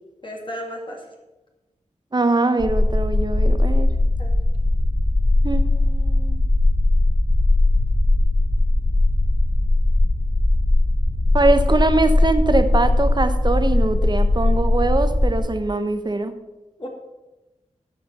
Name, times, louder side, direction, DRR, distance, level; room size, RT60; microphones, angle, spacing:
voice 1, 0.2-1.0 4.2-4.3 16.8-16.9, equal, 40° left, -1 dB, 2.1 m, -33 dB
voice 2, 2.1-3.9 5.4-6.4 11.3-16.3, right 2 dB, 35° right, 9 dB, 1.0 m, -22 dB
sound 1, 2.6-15.4, left 2 dB, 55° left, 4.0 m, -19 dB
11.5 x 5.0 x 6.0 m, 1.1 s
cardioid pair, 55°, 13 cm